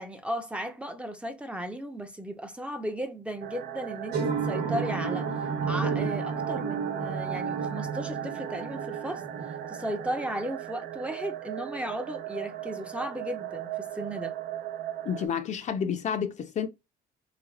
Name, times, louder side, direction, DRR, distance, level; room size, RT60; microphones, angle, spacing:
voice 1, 0.0-5.3 5.6-9.2 9.7-14.3, right 1 dB, 5° right, 0.5 m, -35 dB
sound 1, 3.4-15.3, right 10 dB, 65° right, 0.5 m, -37 dB
sound 2, 4.1-10.3, right 5 dB, 80° right, 1.1 m, -32 dB
voice 2, 15.0-16.7, left 7 dB, 45° left, 0.5 m, -30 dB
3.3 x 3.2 x 2.4 m
cardioid pair, 110°, 17 cm